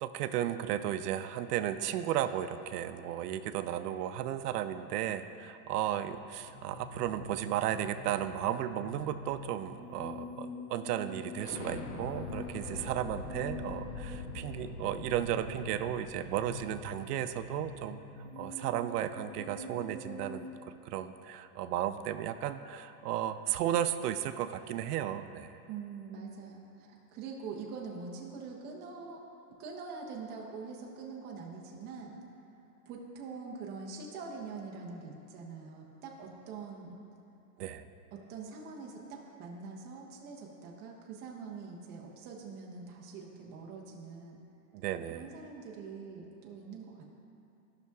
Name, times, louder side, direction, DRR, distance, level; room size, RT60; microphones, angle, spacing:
voice 1, 0.0-18.0 18.4-20.5 20.8-25.6 37.6-37.9 44.7-45.3, right 11 dB, 90° right, 10 dB, 0.5 m, -34 dB
sound 1, 6.3-20.5, left 2 dB, 25° left, 1.8 m, -46 dB
Explosion, 11.4-16.9, left 3 dB, 85° left, 0.9 m, -43 dB
voice 2, 25.7-29.2 29.6-32.2 32.9-37.0 38.1-44.4 45.1-47.0, right 4 dB, 20° right, -1 dB, 0.6 m, -44 dB
14.0 x 5.8 x 2.3 m, 2.7 s
supercardioid pair, 165°, 46 cm